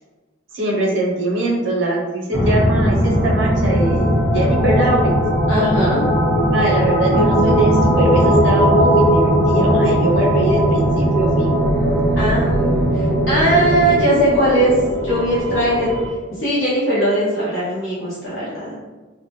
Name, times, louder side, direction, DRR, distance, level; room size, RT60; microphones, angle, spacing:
voice 1, 0.5-5.2 6.5-11.6, right 1 dB, 70° right, -3 dB, 0.5 m, -22 dB
sound 1, 2.3-14.0, right 1 dB, 30° left, 0.7 m, -20 dB
sound 2, 3.0-16.1, equal, 10° left, 0.3 m, -20 dB
voice 2, 5.5-6.0 12.2-14.7 15.0-15.9 16.4-18.7, right 1 dB, 85° left, -9 dB, 0.8 m, -19 dB
2.1 x 2.0 x 2.8 m, 1.3 s
head